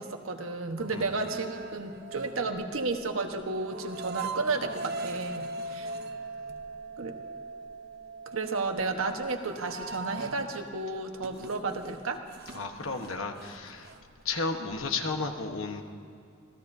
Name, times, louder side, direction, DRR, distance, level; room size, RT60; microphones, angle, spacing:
voice 1, 0.0-5.9 7.0-7.2 8.3-12.2, right 3 dB, 90° right, 5 dB, 1.2 m, -32 dB
sound 1, 0.7-10.6 11.0-14.2, right 3 dB, 50° right, 0.8 m, -41 dB
voice 2, 12.5-13.9 14.2-15.8, left 3 dB, 80° left, 5 dB, 1.2 m, -33 dB
26.5 x 17.0 x 2.7 m, 2.5 s
head